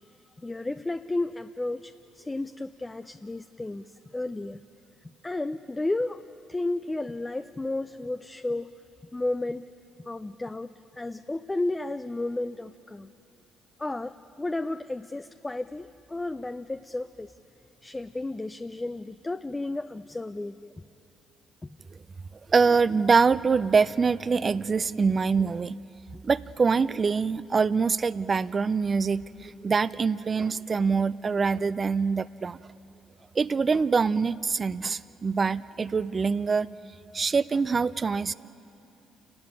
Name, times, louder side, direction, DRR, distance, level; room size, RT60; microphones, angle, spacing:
voice 1, 0.4-3.8 4.1-4.6 5.2-8.7 9.1-9.6 10.1-10.7 11.0-13.1 13.8-17.3 17.8-20.7 21.6-21.7 26.1-26.2, left 2 dB, 20° left, 10 dB, 0.5 m, -32 dB
voice 2, 22.5-25.8 26.2-32.6 33.3-36.7 37.1-38.3, right 5 dB, 35° right, 17 dB, 0.4 m, -24 dB
28.5 x 12.5 x 9.6 m, 2.7 s
supercardioid pair, 65°, 0 cm